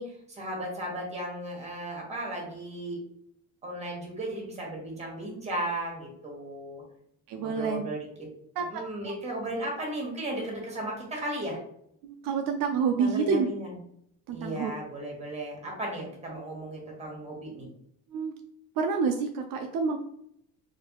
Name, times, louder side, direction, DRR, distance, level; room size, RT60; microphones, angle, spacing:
voice 1, 0.0-3.0 3.6-6.8 7.4-8.0 8.7-11.6 13.0-13.7 14.3-17.7, right 1 dB, 20° right, -1 dB, 1.3 m, -35 dB
voice 2, 7.3-7.9 8.6-8.8 12.0-13.5 14.3-14.7 18.1-18.3 18.8-20.0, right 5 dB, 70° right, 5 dB, 0.5 m, -28 dB
3.3 x 2.8 x 2.9 m, 0.72 s
cardioid pair, 135°, 36 cm